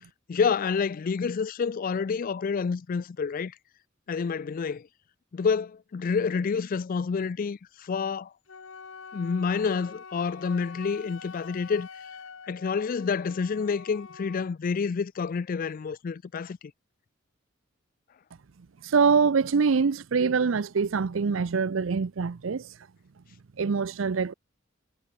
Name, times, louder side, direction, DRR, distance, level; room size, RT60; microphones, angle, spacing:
voice 1, 0.3-3.5 4.1-4.8 5.3-8.3 9.1-11.9 12.5-16.6, left 5 dB, 45° left, 0.4 m, -28 dB
Wind instrument woodwind instrument, 8.5-14.5, left 5 dB, 70° left, 1.0 m, -45 dB
voice 2, 18.8-22.7 23.6-24.3, right 5 dB, 75° right, 0.5 m, -24 dB
head